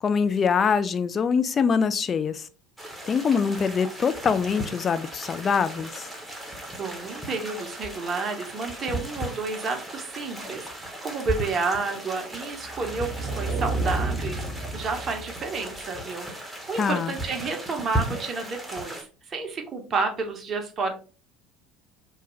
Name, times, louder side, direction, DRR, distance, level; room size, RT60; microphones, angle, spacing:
voice 1, 0.0-2.5 3.1-6.1 16.8-17.1, left 6 dB, 30° left, 0.3 m, -24 dB
sound 1, 2.8-19.0, right 1 dB, 5° right, 0.9 m, -36 dB
voice 2, 6.7-20.9, right 4 dB, 35° right, 0.7 m, -31 dB
sound 2, 12.7-15.6, right 3 dB, 75° left, 1.4 m, -30 dB
3.0 x 2.2 x 3.0 m
figure-of-eight pair, 65°, 0 cm